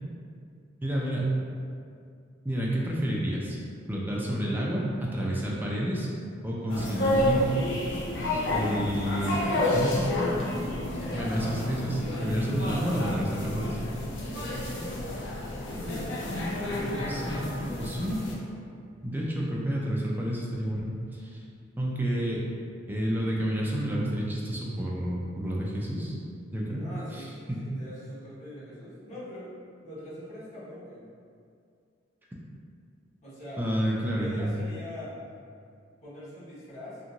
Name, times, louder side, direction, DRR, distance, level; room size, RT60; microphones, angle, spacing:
voice 1, 0.8-1.3 2.4-3.6 3.9-6.1 6.4-7.5 8.5-10.4 11.1-13.8 17.1-17.5 17.8-18.2 19.0-21.3 21.8-22.4 22.9-26.1 26.5-26.8 27.1-27.6 33.6-34.5, equal, 10° right, -4 dB, 0.3 m, -30 dB
sound 1, 6.7-18.3, left 1 dB, 65° left, 0.5 m, -30 dB
voice 2, 14.2-15.2 15.6-15.9 26.8-29.5 29.8-31.1 33.2-33.6 34.1-35.2 36.0-37.0, equal, 40° left, -12 dB, 1.2 m, -43 dB
2.8 x 2.5 x 2.5 m, 2.3 s
head